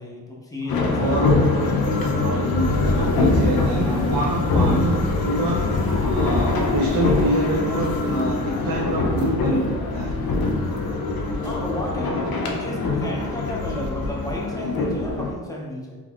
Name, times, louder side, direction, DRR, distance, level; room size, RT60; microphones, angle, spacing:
voice 1, 0.0-1.6 11.3-16.0, left 1 dB, 10° left, -3 dB, 0.6 m, -33 dB
voice 2, 0.6-1.7 2.1-5.7 6.0-10.2 12.0-12.4, right 1 dB, 65° right, -3 dB, 0.6 m, -26 dB
sound 1, 0.7-15.3, left 3 dB, 70° left, 0.6 m, -23 dB
Bicycle, 2.6-8.0, left 1 dB, 90° right, 1.1 m, -31 dB
3.6 x 2.9 x 2.3 m, 1.3 s
wide cardioid pair, 105°, 37 cm